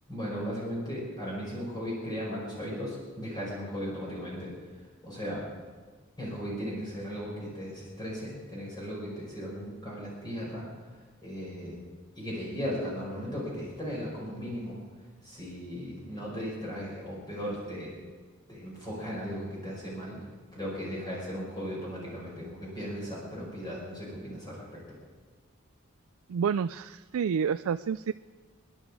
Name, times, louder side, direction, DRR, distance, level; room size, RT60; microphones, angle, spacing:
voice 1, 0.1-4.5 5.0-5.4 6.2-10.7 11.2-11.7 12.1-14.8 15.2-17.9 18.5-20.2 20.5-24.8, equal, 20° left, -5 dB, 4.9 m, -36 dB
voice 2, 26.3-28.1, right 7 dB, 85° right, 12 dB, 0.4 m, -29 dB
27.5 x 11.0 x 4.8 m, 1.5 s
head